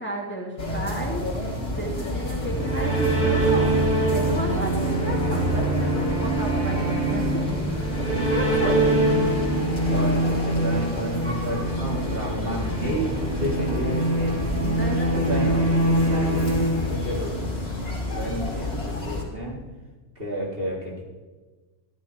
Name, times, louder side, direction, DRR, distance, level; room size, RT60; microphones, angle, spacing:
voice 1, 0.0-3.8 4.1-7.7 8.1-8.9 14.6-15.6, right 1 dB, 10° left, -2 dB, 2.0 m, -33 dB
sound 1, 0.6-19.2, left 1 dB, 40° left, 2.8 m, -30 dB
sound 2, 2.3-17.5, right 2 dB, 10° right, 2.9 m, -24 dB
voice 2, 9.9-14.4 14.9-17.3 18.1-19.6 20.2-21.0, right 1 dB, 50° right, -3 dB, 2.8 m, -31 dB
14.5 x 11.5 x 4.3 m, 1.3 s
omnidirectional pair, 1.3 m